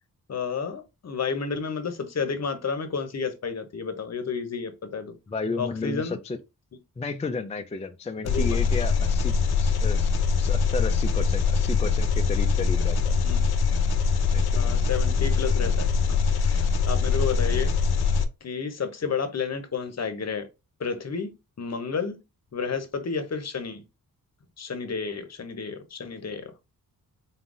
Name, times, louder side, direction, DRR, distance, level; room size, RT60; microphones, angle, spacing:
voice 1, 0.3-5.1 5.6-6.2 8.2-8.6 13.2-13.4 14.5-17.8 18.4-20.5 20.8-21.3 21.6-22.2 22.5-23.8 24.6-26.5, left 5 dB, 45° left, 0.8 m, -31 dB
voice 2, 5.3-6.4 7.0-10.1 10.4-13.1 14.3-14.6, left 4 dB, 20° left, 0.3 m, -33 dB
Engine, 8.3-18.2, left 5 dB, 85° left, 0.7 m, -23 dB
4.0 x 3.8 x 2.5 m
wide cardioid pair, 115°, 37 cm